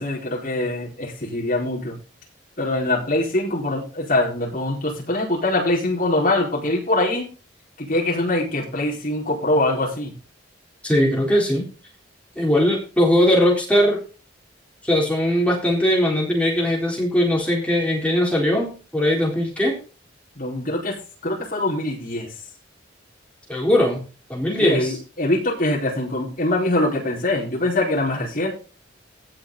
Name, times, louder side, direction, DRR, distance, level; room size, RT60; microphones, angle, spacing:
voice 1, 0.0-2.0 2.6-7.3 7.8-10.1 20.4-22.3 24.6-28.5, left 1 dB, 45° left, -4 dB, 4.9 m, -23 dB
voice 2, 10.8-11.7 12.4-14.0 14.8-19.7 23.5-24.0 24.3-25.0, left 1 dB, 5° left, -3 dB, 4.1 m, -20 dB
16.5 x 6.5 x 4.1 m, 0.35 s
head